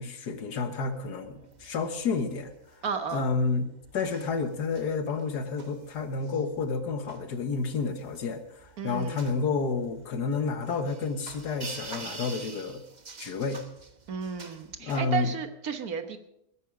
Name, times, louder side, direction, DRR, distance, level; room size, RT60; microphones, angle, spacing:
voice 1, 0.0-2.5 3.1-3.7 3.9-12.8 13.2-13.6 14.8-15.3, left 4 dB, 85° left, 9 dB, 1.9 m, -30 dB
sound 1, 0.8-15.0, right 4 dB, 30° right, 1.1 m, -47 dB
voice 2, 2.8-3.3 8.8-9.3 14.1-16.2, right 6 dB, 65° right, 8 dB, 1.7 m, -33 dB
20.5 x 10.5 x 5.0 m, 0.78 s
omnidirectional pair, 1.7 m